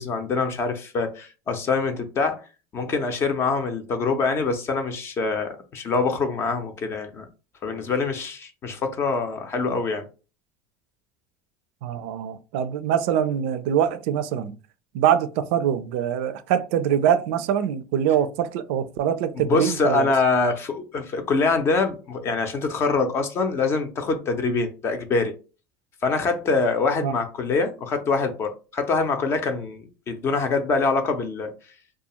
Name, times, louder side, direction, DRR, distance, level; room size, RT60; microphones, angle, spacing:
voice 1, 0.0-2.4 2.7-7.3 7.6-10.1 19.4-25.3 26.0-31.5, left 4 dB, 40° left, 0.6 m, -24 dB
voice 2, 11.8-14.5 14.9-20.1 27.0-27.2, right 9 dB, 75° right, 0.3 m, -24 dB
2.4 x 2.3 x 2.8 m
supercardioid pair, 95°, 7 cm